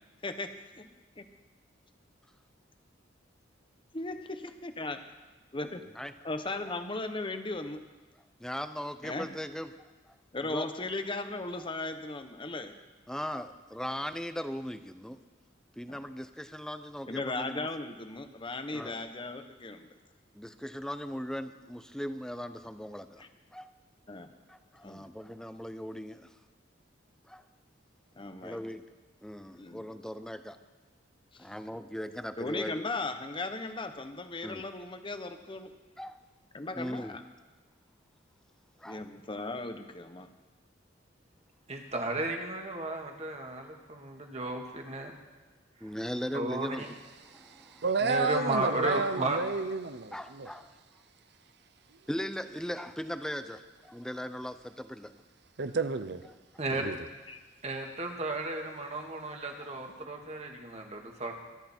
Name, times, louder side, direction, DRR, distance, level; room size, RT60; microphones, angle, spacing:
voice 1, 3.9-5.0 5.5-5.8 6.2-7.8 9.0-9.3 10.3-12.7 15.9-16.0 17.1-19.9 23.2-23.3 24.1-24.3 24.8-25.1 28.2-28.6 29.5-29.9 31.4-31.5 32.4-35.7 36.5-37.2 38.8-40.3 57.3-57.4, left 2 dB, 25° left, 1.0 m, -37 dB
voice 2, 8.4-9.7 10.4-10.7 13.1-15.2 15.8-17.7 18.7-19.0 20.3-23.3 23.5-23.7 24.5-26.3 27.3-27.4 28.4-28.8 29.2-30.6 31.4-32.8 34.4-34.6 36.0-36.2 36.7-37.2 38.8-39.0 45.8-46.9 47.3-47.8 50.1-50.7 52.1-55.1 56.5-56.9 59.3-59.4, equal, 5° left, 0.6 m, -38 dB
voice 3, 41.7-45.1 46.3-46.9 48.0-49.4 56.6-56.9 57.6-61.3, right 2 dB, 35° right, 2.0 m, -34 dB
voice 4, 47.3-50.5 55.6-56.2 56.7-57.0, right 4 dB, 60° right, 0.7 m, -31 dB
24.0 x 10.5 x 4.5 m
head